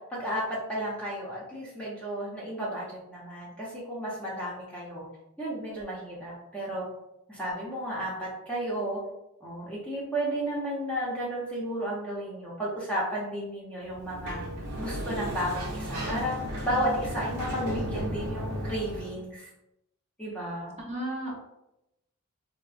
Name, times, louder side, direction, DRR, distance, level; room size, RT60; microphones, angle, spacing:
voice 1, 0.0-5.0 5.4-6.9 7.3-9.0 9.4-14.4 14.8-16.4 16.6-19.5 20.2-20.7, equal, 5° left, -6 dB, 0.6 m, -33 dB
Sliding door, 13.9-19.2, equal, 85° right, 0.8 m, -34 dB
voice 2, 20.6-21.3, right 1 dB, 30° right, -3 dB, 0.7 m, -34 dB
3.6 x 2.0 x 2.4 m, 0.90 s
head